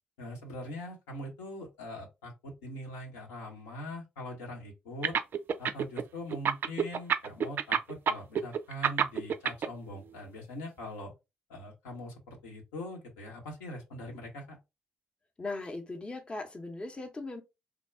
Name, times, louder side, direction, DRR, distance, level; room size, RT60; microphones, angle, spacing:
voice 1, 0.2-5.2 5.6-11.1 11.5-14.6, left 1 dB, 70° left, 1.0 m, -42 dB
sound 1, 5.0-6.0 6.3-9.7, right 7 dB, 45° right, 0.4 m, -27 dB
voice 2, 15.4-17.4, left 2 dB, 20° left, 0.7 m, -38 dB
3.5 x 2.2 x 3.4 m
figure-of-eight pair, 45°, 5 cm